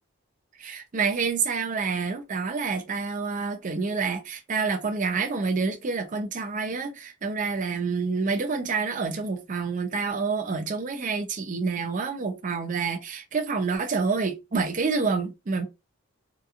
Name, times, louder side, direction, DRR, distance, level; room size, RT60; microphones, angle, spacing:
voice 1, 0.6-15.7, right 4 dB, 35° right, 0.4 m, -28 dB
2.8 x 2.3 x 2.4 m
head